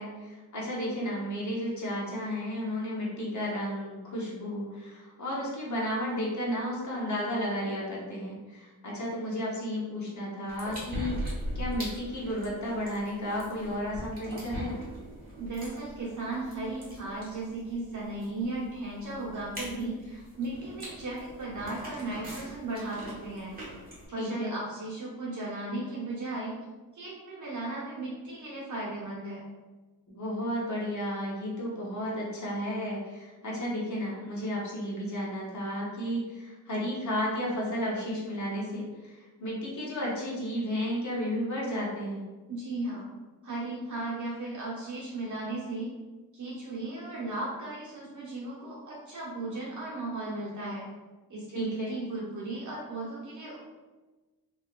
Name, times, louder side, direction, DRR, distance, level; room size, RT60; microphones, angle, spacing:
voice 1, 0.0-14.7 24.2-24.5 30.1-42.2 51.5-51.9, equal, 50° left, -5 dB, 1.2 m, -33 dB
sound 1, 10.5-24.1, equal, 25° right, 1.4 m, -41 dB
voice 2, 15.4-23.6 24.1-26.6 26.9-29.4 42.5-43.1 43.4-45.9 46.3-50.9 51.3-53.6, right 2 dB, 50° right, -6 dB, 1.4 m, -36 dB
3.1 x 3.0 x 2.5 m, 1.2 s
wide cardioid pair, 90°, 38 cm